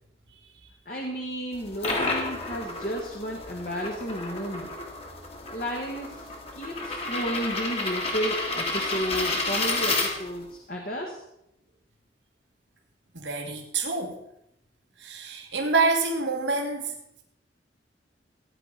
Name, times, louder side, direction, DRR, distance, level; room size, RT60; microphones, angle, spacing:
voice 1, 0.8-4.7 5.5-11.2, equal, 50° left, 0 dB, 1.7 m, -32 dB
sound 1, 1.5-10.5, left 2 dB, 35° left, 1.9 m, -31 dB
voice 2, 13.1-14.1 15.0-16.9, right 3 dB, 85° right, 1 dB, 1.9 m, -27 dB
16.0 x 9.7 x 4.1 m, 0.80 s
head